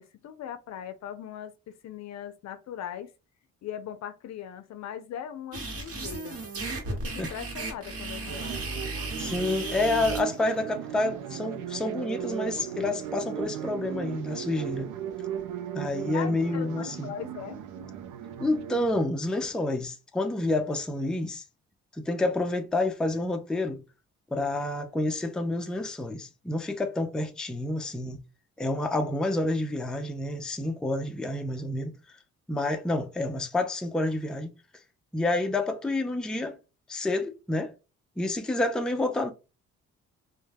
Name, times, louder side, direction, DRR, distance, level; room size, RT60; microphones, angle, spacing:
voice 1, 0.0-3.1 3.6-6.4 6.9-8.6 9.6-9.8 16.1-17.6, left 9 dB, 60° left, 0.5 m, -40 dB
sound 1, 5.5-10.2, right 2 dB, 50° right, 1.1 m, -35 dB
sound 2, 8.3-19.0, right 9 dB, 85° right, 0.5 m, -37 dB
voice 2, 9.2-14.9 15.7-17.1 18.4-21.4 22.0-23.8 24.3-28.2 28.6-31.9 32.5-34.5 35.1-36.6 36.9-37.7 38.2-39.3, left 2 dB, 5° left, 0.4 m, -29 dB
2.2 x 2.1 x 3.3 m
cardioid pair, 90°, 30 cm